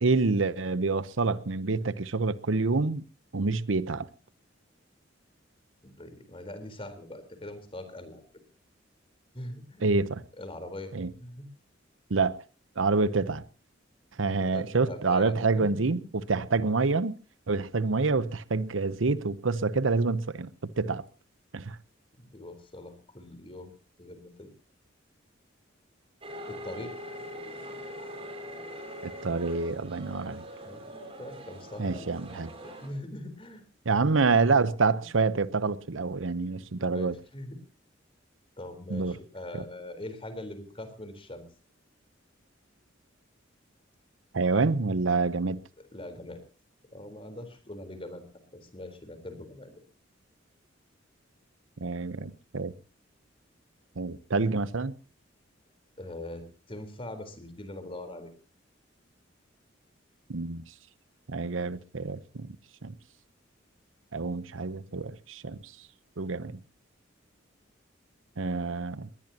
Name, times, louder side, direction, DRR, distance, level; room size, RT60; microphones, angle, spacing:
voice 1, 0.0-3.0 3.3-4.1 9.8-10.2 10.9-11.1 12.1-12.4 12.8-13.4 14.2-16.0 16.3-17.2 17.5-21.0 21.5-21.8 29.0-30.4 31.8-32.5 33.9-37.2 38.9-39.2 39.5-39.6 44.3-45.6 51.8-52.7 54.0-54.9 60.3-60.6 61.3-62.6 62.8-62.9 64.1-65.7 66.2-66.6 68.4-69.1, right 3 dB, 85° right, 0.8 m, -27 dB
voice 2, 5.8-8.2 9.3-9.9 10.4-10.9 11.2-11.5 14.3-15.9 22.2-23.7 24.0-24.5 26.5-26.9 30.6-30.8 31.2-32.1 32.6-33.6 36.6-37.6 38.6-41.4 45.8-46.4 46.9-48.3 48.5-49.7 56.0-58.3, left 1 dB, 30° left, 3.9 m, -42 dB
sound 1, 26.2-32.9, equal, 30° right, 5.6 m, -42 dB
21.5 x 19.5 x 2.9 m
head